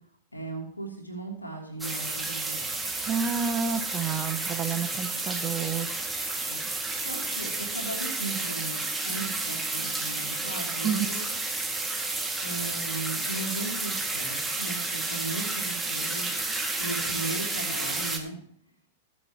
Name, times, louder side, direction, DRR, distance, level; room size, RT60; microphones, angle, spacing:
voice 1, 0.3-2.7 6.4-6.6 6.9-11.2 11.6-11.7 12.4-18.4, right 2 dB, 90° left, 1 dB, 3.1 m, -37 dB
sound 1, 1.8-18.2, right 2 dB, 5° right, 2.2 m, -31 dB
voice 2, 3.1-5.9 10.8-11.1, right 6 dB, 30° right, 8 dB, 1.2 m, -29 dB
22.0 x 7.6 x 3.0 m, 0.65 s
figure-of-eight pair, 100°, 0 cm